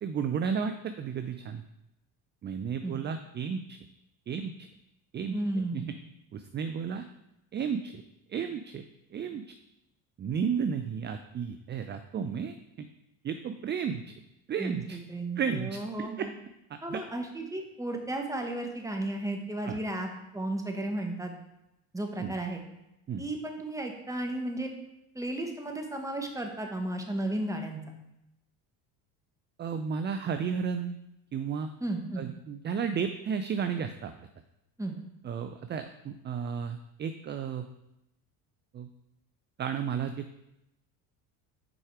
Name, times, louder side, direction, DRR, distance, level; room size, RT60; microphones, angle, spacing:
voice 1, 0.0-1.6 2.4-3.8 4.3-4.7 5.1-5.8 6.3-7.1 7.5-8.0 8.3-8.8 9.1-9.5 10.2-12.9 13.2-14.0 14.5-15.0 15.4-16.3 16.9-17.0 19.6-19.8 22.2-22.3 23.1-23.3 29.6-30.9 31.3-31.7 32.2-34.3 35.2-37.7 38.7-38.9 39.6-40.4, right 6 dB, 25° right, 8 dB, 0.4 m, -33 dB
voice 2, 5.3-5.9 14.6-16.3 16.8-21.3 21.9-22.6 23.2-24.7 25.1-27.8 31.8-32.3 34.8-35.0, right 1 dB, 5° right, 3 dB, 1.3 m, -34 dB
6.1 x 4.9 x 4.7 m, 0.87 s
supercardioid pair, 75°, 48 cm